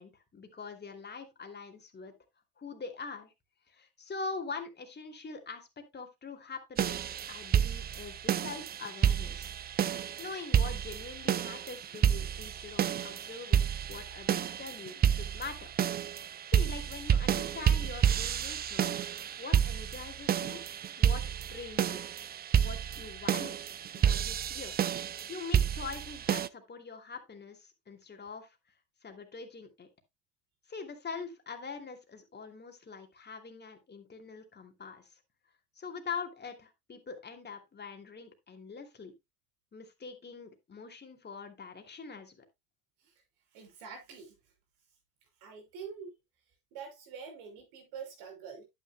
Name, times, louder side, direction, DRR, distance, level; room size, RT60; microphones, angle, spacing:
voice 1, 0.0-2.1 2.6-3.3 3.7-9.5 10.2-15.7 16.5-19.0 19.4-20.6 21.0-22.0 22.6-23.6 24.0-24.8 25.3-28.6 29.0-29.9 30.7-35.2 35.8-39.1 39.7-42.4, left 5 dB, 25° left, 2.7 m, -43 dB
sound 1, 6.8-26.5, right 9 dB, 25° right, 0.4 m, -30 dB
voice 2, 43.5-44.3 45.4-46.1 46.7-48.6, right 6 dB, 65° right, 6.5 m, -45 dB
11.0 x 9.6 x 2.3 m
supercardioid pair, 95°, 44 cm